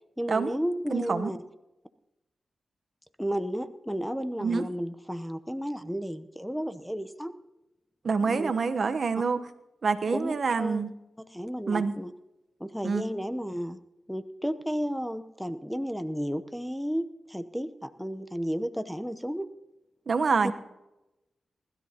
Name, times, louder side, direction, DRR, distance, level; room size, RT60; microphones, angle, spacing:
voice 1, 0.2-1.4 3.2-7.3 8.2-8.5 10.1-10.8 11.2-12.1 12.6-13.8 14.1-19.5, equal, ahead, 11 dB, 0.9 m, -33 dB
voice 2, 0.9-1.3 4.4-4.6 8.0-9.4 9.8-10.9 11.7-11.9 12.8-13.0 20.1-20.5, right 4 dB, 65° right, 9 dB, 1.0 m, -26 dB
20.5 x 13.0 x 2.9 m, 0.95 s
cardioid pair, 45°, 0 cm